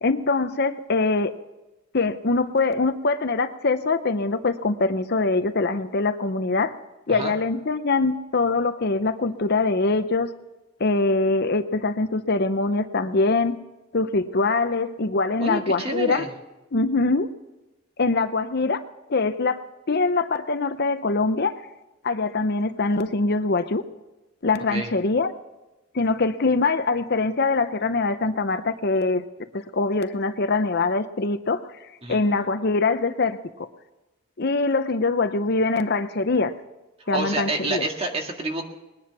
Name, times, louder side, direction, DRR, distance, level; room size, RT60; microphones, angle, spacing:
voice 1, 0.0-1.3 1.9-6.7 7.1-10.3 10.8-13.6 13.9-16.2 16.7-17.3 18.0-18.8 19.1-21.6 22.0-23.8 24.4-25.3 25.9-29.3 29.5-31.6 32.1-33.7 34.4-36.5 37.1-37.8, left 3 dB, 50° left, 10 dB, 0.7 m, -23 dB
voice 2, 15.4-16.3 24.7-24.9 32.0-32.2 37.1-38.7, right 2 dB, 25° right, 3 dB, 1.9 m, -28 dB
20.5 x 10.5 x 6.0 m, 1.0 s
head